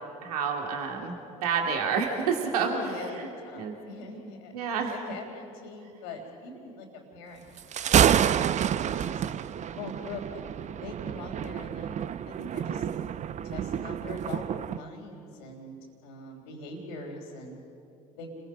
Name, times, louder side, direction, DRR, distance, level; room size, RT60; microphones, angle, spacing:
voice 1, 0.2-1.1 1.4-2.7 3.2-3.3 3.5-3.7 4.5-5.0, right 6 dB, 80° right, 2 dB, 2.5 m, -28 dB
voice 2, 2.6-4.5 4.9-9.2 9.7-10.4 10.8-12.0 12.2-12.9 13.4-17.6 18.1-18.4, left 2 dB, 75° left, -5 dB, 3.4 m, -42 dB
Thunder, 7.6-14.8, right 9 dB, 40° right, 0.7 m, -28 dB
30.0 x 22.0 x 5.6 m, 2.7 s
hypercardioid pair, 65°, 19 cm